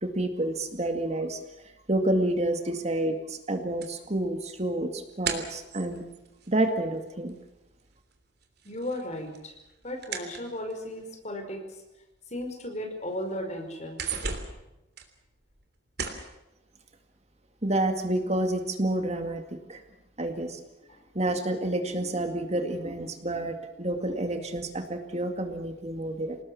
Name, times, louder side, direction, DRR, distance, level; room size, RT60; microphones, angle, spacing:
voice 1, 0.0-1.4 1.9-6.0 6.5-7.3 17.6-19.4 19.7-19.8 20.2-20.6 21.1-26.4, right 1 dB, 35° right, 6 dB, 2.2 m, -29 dB
sound 1, 3.8-7.5 7.8-11.0 11.7-11.8 12.3-12.4 12.8-13.3 13.6-15.7 16.0-16.3, right 5 dB, 60° right, 3.2 m, -37 dB
voice 2, 8.6-9.5 9.8-11.8 12.3-14.1 20.9-21.0, left 1 dB, 40° left, 4 dB, 5.1 m, -35 dB
28.0 x 19.0 x 7.1 m, 0.93 s
head